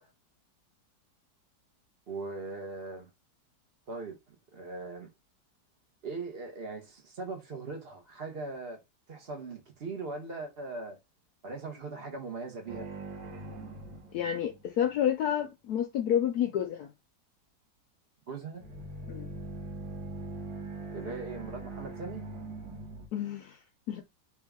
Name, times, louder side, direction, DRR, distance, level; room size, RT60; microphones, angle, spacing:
voice 1, 2.1-3.1 3.9-5.1 6.0-8.8 9.1-11.0 11.4-12.9 18.3-18.6 20.9-22.3, right 3 dB, 40° right, 1.1 m, -40 dB
sound 1, 12.7-14.9 18.5-23.1, right 2 dB, 65° right, 1.6 m, -42 dB
voice 2, 14.1-16.9 19.1-19.3 23.1-23.6 23.9-24.0, left 10 dB, 70° left, 1.0 m, -29 dB
3.5 x 2.9 x 3.5 m
omnidirectional pair, 2.0 m